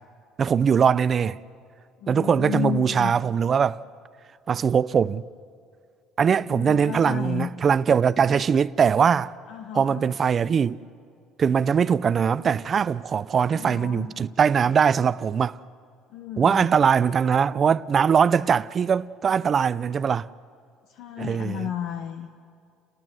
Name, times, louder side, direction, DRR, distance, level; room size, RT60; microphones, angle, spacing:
voice 1, 0.4-1.4 2.1-3.8 4.5-5.2 6.2-9.3 9.7-10.8 11.4-15.6 16.4-20.3 21.2-21.6, right 7 dB, 40° right, 0.5 m, -21 dB
voice 2, 2.0-3.1 6.5-7.5 9.5-10.1 13.5-14.1 16.1-16.7 20.9-22.3, left 11 dB, 70° left, 1.3 m, -33 dB
30.0 x 19.5 x 7.9 m
supercardioid pair, 100°, 0 cm